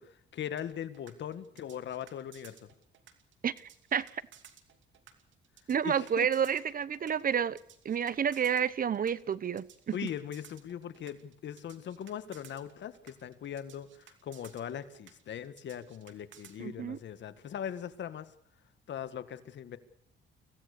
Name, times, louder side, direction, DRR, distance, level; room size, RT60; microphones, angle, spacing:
voice 1, 0.0-2.7 5.8-6.3 9.9-18.3 18.9-19.8, left 9 dB, 65° left, 1.8 m, -40 dB
sound 1, 0.6-16.6, right 9 dB, 70° right, 2.7 m, -57 dB
voice 2, 3.9-4.2 5.7-7.6 7.8-9.9 16.6-17.0, right 8 dB, 45° right, 0.9 m, -30 dB
25.0 x 17.0 x 6.7 m
cardioid pair, 90°, 20 cm